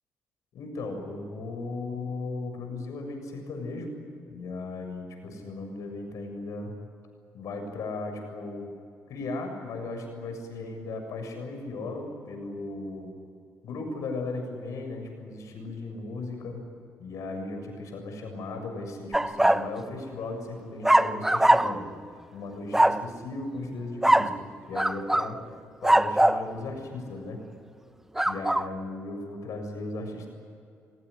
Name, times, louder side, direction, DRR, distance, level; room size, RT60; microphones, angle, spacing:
voice 1, 0.5-3.9 4.3-6.7 7.3-8.7 9.1-13.1 13.6-16.7 17.0-21.9 22.1-24.3 24.7-25.4 25.8-27.4 28.3-30.3, left 3 dB, 75° left, 4 dB, 7.2 m, -36 dB
sound 1, 19.1-19.7 20.8-21.9 22.7-23.1 24.0-24.4 24.8-25.3 25.8-26.4 28.2-28.7, right 1 dB, 5° right, 0.7 m, -21 dB
28.5 x 18.5 x 10.0 m, 2.4 s
cardioid pair, 110°, 6 cm